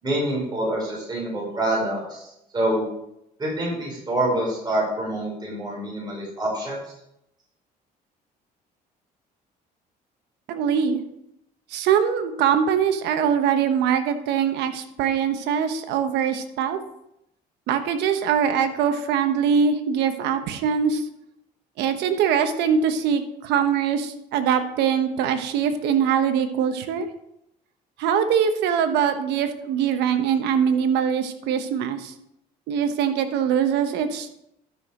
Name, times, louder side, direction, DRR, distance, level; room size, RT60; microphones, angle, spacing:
voice 1, 0.0-2.8 3.4-6.8, right 1 dB, 25° right, -4 dB, 4.9 m, -26 dB
voice 2, 10.5-11.0 11.7-16.8 17.7-21.0 21.8-27.1 28.0-32.1 32.7-34.3, right 7 dB, 85° right, 8 dB, 1.1 m, -22 dB
12.5 x 6.2 x 5.0 m, 0.81 s
cardioid pair, 110°, 17 cm